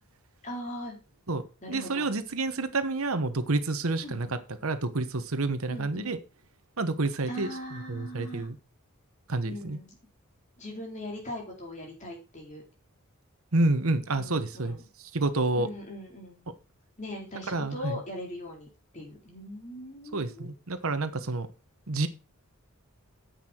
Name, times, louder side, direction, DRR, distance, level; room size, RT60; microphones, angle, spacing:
voice 1, 0.4-1.0 1.6-2.1 4.0-4.3 5.7-6.1 7.3-8.5 9.4-10.0 10.6-12.6 14.1-14.8 15.5-16.4 17.0-18.7 18.9-20.5, left 1 dB, 35° left, 4.2 m, -40 dB
voice 2, 1.7-6.2 6.8-7.5 7.9-8.5 9.3-9.8 13.5-14.8 15.1-15.7 17.5-18.0 20.1-21.5 21.9-22.1, right 2 dB, 70° right, 1.1 m, -29 dB
10.0 x 8.2 x 4.5 m
head